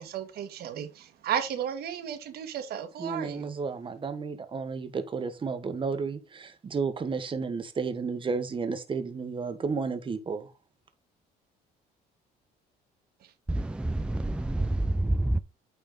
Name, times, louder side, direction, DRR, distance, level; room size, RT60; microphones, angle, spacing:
voice 1, 0.0-3.6 13.2-13.3, right 9 dB, 65° right, 1.6 m, -34 dB
voice 2, 3.0-10.5, right 5 dB, 30° right, 1.4 m, -32 dB
voice 3, 13.5-15.4, right 1 dB, 5° right, 0.4 m, -27 dB
9.0 x 4.3 x 3.8 m
cardioid pair, 110°, 17 cm